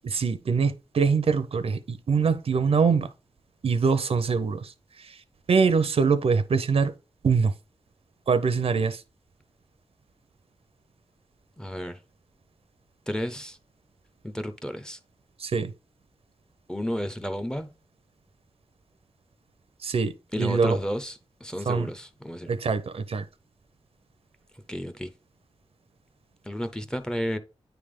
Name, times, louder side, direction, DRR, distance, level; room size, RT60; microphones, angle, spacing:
voice 1, 0.1-3.1 3.6-4.7 5.1-5.2 5.5-6.9 7.2-7.5 8.3-9.0 15.4-15.7 19.8-20.8 21.7-21.9 22.5-23.2, right 5 dB, 70° right, 0.6 m, -23 dB
voice 2, 11.6-12.0 13.1-13.6 14.2-15.0 16.7-17.7 20.3-22.5 24.7-25.1 26.4-27.4, equal, 5° left, 0.6 m, -32 dB
9.1 x 3.4 x 3.6 m
wide cardioid pair, 110°, 10 cm